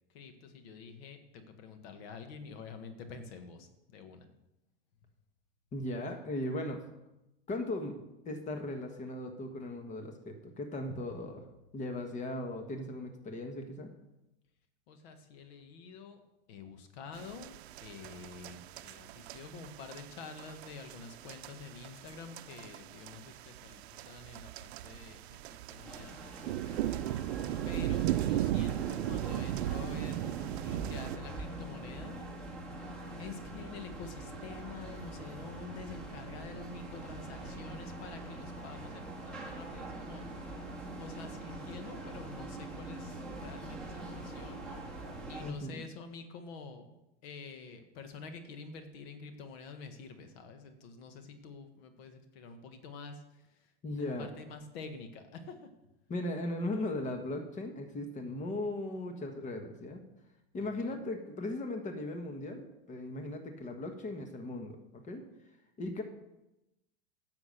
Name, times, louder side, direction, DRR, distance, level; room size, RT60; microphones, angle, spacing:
voice 1, 0.1-4.3 10.9-11.0 14.9-16.2 16.5-17.5 17.8-25.4 25.7-26.2 27.6-30.3 30.6-32.2 33.2-40.2 41.0-44.6 45.3-55.7 60.6-61.0, left 4 dB, 70° left, 7 dB, 1.7 m, -48 dB
voice 2, 5.7-6.8 7.5-11.4 11.7-13.9 45.4-45.8 53.8-54.3 56.1-60.0 60.5-65.2 65.8-66.0, left 1 dB, 25° left, 5 dB, 1.4 m, -38 dB
sound 1, 17.1-31.2, right 13 dB, 80° right, 0.6 m, -37 dB
sound 2, 25.8-45.5, right 2 dB, ahead, 2.3 m, -44 dB
10.0 x 7.1 x 6.8 m, 0.93 s
supercardioid pair, 135°, 32 cm